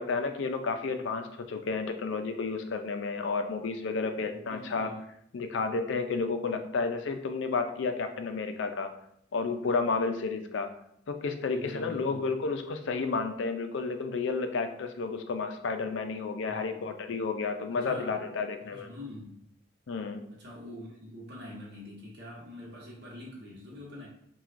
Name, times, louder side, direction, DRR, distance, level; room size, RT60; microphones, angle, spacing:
voice 1, 0.0-4.9 5.3-8.9 9.3-10.7 11.1-18.9 19.9-20.2, left 4 dB, 70° left, 7 dB, 0.4 m, -31 dB
voice 2, 4.2-5.0 11.5-12.3 16.4-16.9 17.7-18.2 18.7-19.4 20.3-24.1, left 1 dB, 55° right, -4 dB, 1.1 m, -45 dB
5.8 x 2.3 x 2.5 m, 0.72 s
head